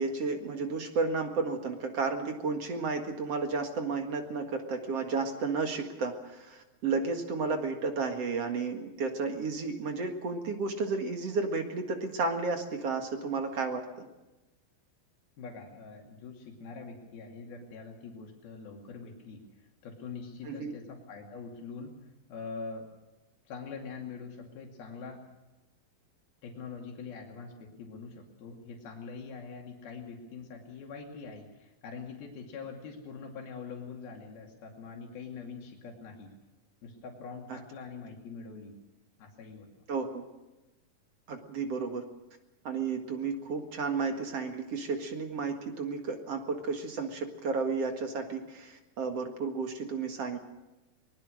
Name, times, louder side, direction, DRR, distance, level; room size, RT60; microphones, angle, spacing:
voice 1, 0.0-14.1 20.5-20.8 39.9-40.2 41.3-42.0 42.6-50.4, right 4 dB, 50° right, 4 dB, 2.5 m, -32 dB
voice 2, 15.4-22.0 22.3-22.9 23.5-25.2 26.4-36.3 36.8-38.8 39.2-39.7, left 5 dB, 90° left, 1 dB, 4.4 m, -44 dB
23.0 x 21.0 x 6.5 m, 1.0 s
omnidirectional pair, 4.2 m